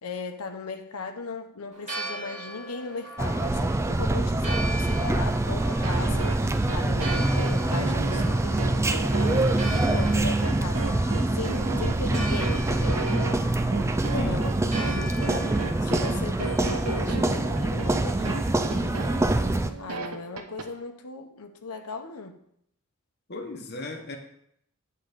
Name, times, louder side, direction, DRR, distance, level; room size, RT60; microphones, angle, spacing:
voice 1, 0.0-9.5 9.7-11.0 11.3-13.1 13.9-19.1 19.8-22.4, left 3 dB, 90° left, 6 dB, 0.8 m, -38 dB
Church bell, 1.7-18.4, right 1 dB, 30° right, 1.7 m, -40 dB
sound 1, 3.2-19.7, right 2 dB, 10° right, 0.3 m, -25 dB
sound 2, 5.8-20.7, right 4 dB, 75° right, 0.9 m, -35 dB
voice 2, 14.1-14.5 23.3-24.2, left 2 dB, 50° left, 4 dB, 1.1 m, -37 dB
8.5 x 3.8 x 6.6 m, 0.73 s
head